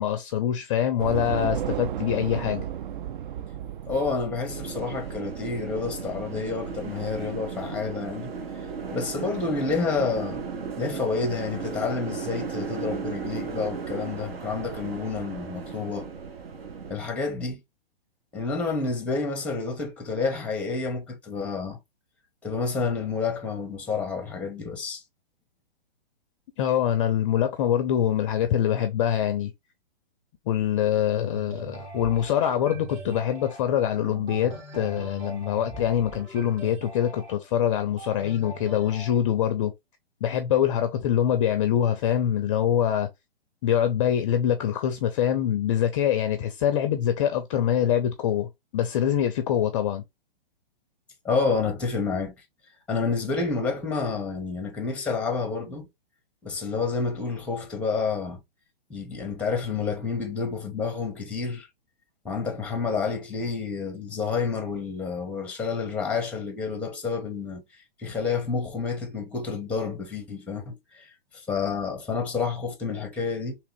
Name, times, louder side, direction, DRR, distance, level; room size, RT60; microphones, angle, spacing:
voice 1, 0.0-2.6 26.6-29.5 30.5-39.7 40.2-43.1 43.6-50.0, left 10 dB, 35° left, 0.4 m, -24 dB
Train / Subway metro underground, 1.0-10.4, right 10 dB, 55° right, 0.4 m, -36 dB
voice 2, 3.9-8.3 8.9-10.4 10.8-16.1 16.9-17.6 18.3-21.8 22.4-25.0 51.2-52.3 52.9-55.9 56.4-58.4 58.9-61.7 62.2-67.6 68.0-73.6, left 4 dB, 5° left, 0.7 m, -29 dB
sound 1, 4.5-16.9, right 6 dB, 70° right, 1.1 m, -35 dB
sound 2, 31.3-39.2, right 2 dB, 35° right, 2.1 m, -41 dB
3.5 x 2.9 x 3.3 m
hypercardioid pair, 135°, 31 cm